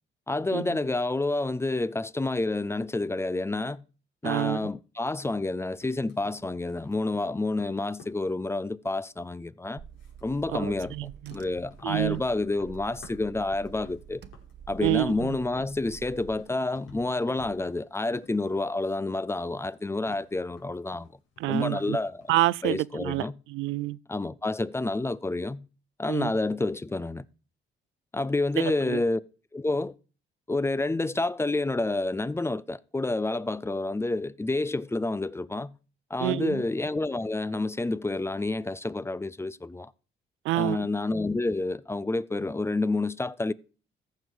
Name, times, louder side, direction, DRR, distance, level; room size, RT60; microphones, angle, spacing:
voice 1, 0.3-3.8 4.2-9.8 10.2-10.9 11.3-14.2 14.7-21.1 21.5-22.3 22.6-23.4 24.1-25.7 26.0-27.2 28.1-29.2 29.5-29.9 30.5-35.8 36.1-39.9 40.5-43.5, left 2 dB, 15° left, 0.5 m, -29 dB
voice 2, 4.2-4.6 10.5-11.4 11.8-12.2 14.8-15.1 21.4-22.0 22.3-23.2 23.5-24.0 26.1-26.3 28.9-29.0 36.2-36.6 40.5-40.8, right 17 dB, 85° right, 0.4 m, -27 dB
sound 1, 5.0-9.5 9.9-19.1 19.4-22.6, left 4 dB, 75° left, 4.1 m, -54 dB
Car / Engine, 9.8-16.4, right 8 dB, 60° right, 0.9 m, -48 dB
14.5 x 6.1 x 4.8 m
cardioid pair, 90°, 20 cm